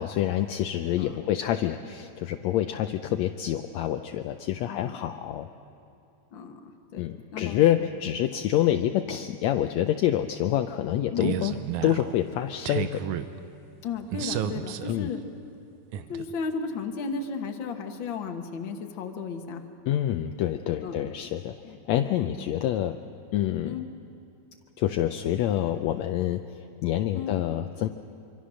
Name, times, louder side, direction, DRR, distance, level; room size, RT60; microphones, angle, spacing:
voice 1, 0.0-5.5 7.0-11.5 11.8-13.0 14.9-15.1 19.9-23.0 23.3-23.8 24.8-27.9, left 12 dB, 75° left, 7 dB, 1.8 m, -27 dB
voice 2, 6.3-7.0 7.3-7.9 11.1-11.4 13.8-15.2 16.1-19.6 20.1-20.2 20.8-21.3 21.6-21.8 22.2-22.4 23.6-23.9 27.1-27.4, left 5 dB, 50° left, 4 dB, 1.8 m, -34 dB
sound 1, 11.2-12.2 12.7-13.3 14.1-14.9 15.9-16.3, right 10 dB, 90° right, 2.3 m, -31 dB
25.5 x 25.0 x 6.3 m, 2.7 s
omnidirectional pair, 3.4 m